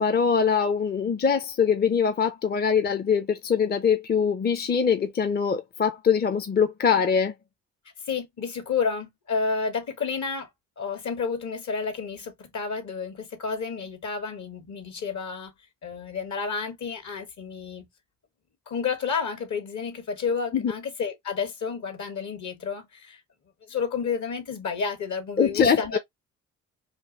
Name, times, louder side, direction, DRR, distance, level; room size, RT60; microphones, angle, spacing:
voice 1, 0.0-7.3 20.5-20.7 25.4-26.0, left 6 dB, 30° left, 0.6 m, -23 dB
voice 2, 8.1-10.5 10.8-15.5 15.8-17.9 18.7-23.2 23.6-26.0, left 5 dB, 60° left, 1.6 m, -30 dB
4.4 x 2.6 x 2.8 m
supercardioid pair, 65°, 33 cm